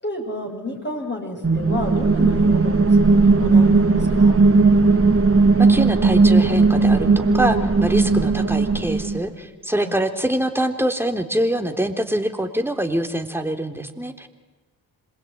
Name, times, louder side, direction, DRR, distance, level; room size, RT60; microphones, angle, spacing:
voice 1, 0.0-4.4 9.7-9.9, left 1 dB, 20° left, 1 dB, 7.7 m, -31 dB
sound 1, 1.4-9.2, right 3 dB, 25° right, 3.4 m, -16 dB
voice 2, 5.6-14.3, right 1 dB, 5° right, 6 dB, 3.8 m, -24 dB
27.0 x 20.5 x 9.7 m, 1.3 s
hypercardioid pair, 45°, 48 cm